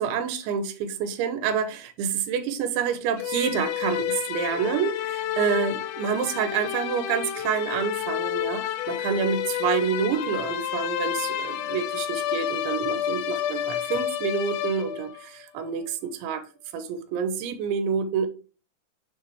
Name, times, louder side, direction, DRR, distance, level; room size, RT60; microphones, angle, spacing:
voice 1, 0.0-16.4 16.7-18.3, right 7 dB, 85° right, 3.2 m, -28 dB
sound 1, 3.2-15.3, left 11 dB, 90° left, 3.0 m, -30 dB
7.1 x 4.8 x 3.2 m
omnidirectional pair, 5.2 m